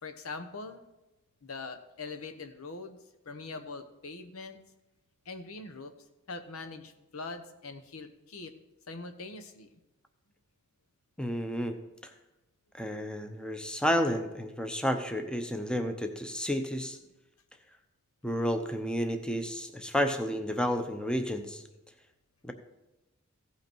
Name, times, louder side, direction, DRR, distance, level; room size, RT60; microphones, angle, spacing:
voice 1, 0.0-0.9 1.4-4.6 5.2-5.9 6.3-8.5 8.9-9.7, left 3 dB, 85° left, 8 dB, 1.0 m, -42 dB
voice 2, 11.2-11.7 12.0-12.1 12.7-17.0 18.2-21.6 22.4-22.5, equal, 5° left, 7 dB, 0.7 m, -31 dB
15.5 x 5.7 x 4.5 m, 1.0 s
head